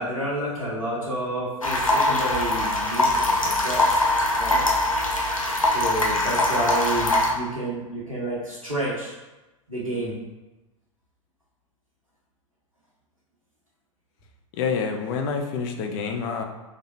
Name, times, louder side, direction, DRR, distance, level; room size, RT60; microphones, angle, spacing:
voice 1, 0.0-4.0 4.3-4.6 5.6-9.1 9.7-10.2, right 1 dB, 90° right, -6 dB, 1.4 m, -30 dB
sound 1, 1.6-7.3, left 2 dB, 85° left, 0.7 m, -22 dB
voice 2, 14.6-16.4, left 5 dB, 40° left, 4 dB, 0.5 m, -27 dB
3.6 x 3.4 x 2.9 m, 1.1 s
figure-of-eight pair, 90°, 17 cm